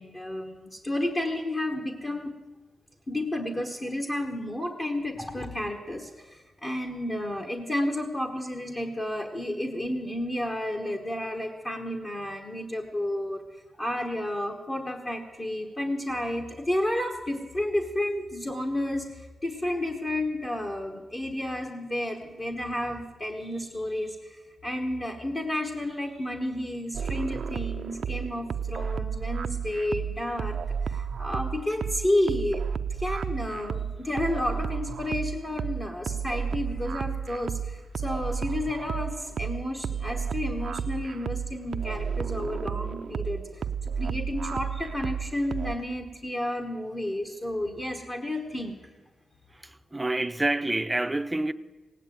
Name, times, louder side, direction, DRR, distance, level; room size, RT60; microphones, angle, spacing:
voice 1, 0.0-2.3 3.1-32.6 32.9-48.9, left 1 dB, 30° left, 1.2 m, -31 dB
sound 1, 26.9-45.8, right 7 dB, 65° right, 0.4 m, -32 dB
voice 2, 49.5-51.5, right 2 dB, 10° right, 0.5 m, -28 dB
17.5 x 9.0 x 9.1 m
wide cardioid pair, 120°, 0 cm